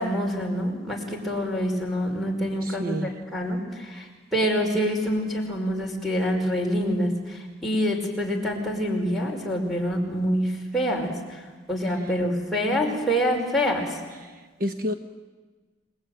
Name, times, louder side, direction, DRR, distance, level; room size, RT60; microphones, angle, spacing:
voice 1, 0.0-3.0 3.3-11.4 11.7-14.0, equal, ahead, 0 dB, 5.2 m, -26 dB
voice 2, 2.6-3.2 11.9-12.1 14.2-14.9, equal, 50° right, 7 dB, 1.2 m, -31 dB
29.0 x 20.5 x 9.2 m, 1.4 s
head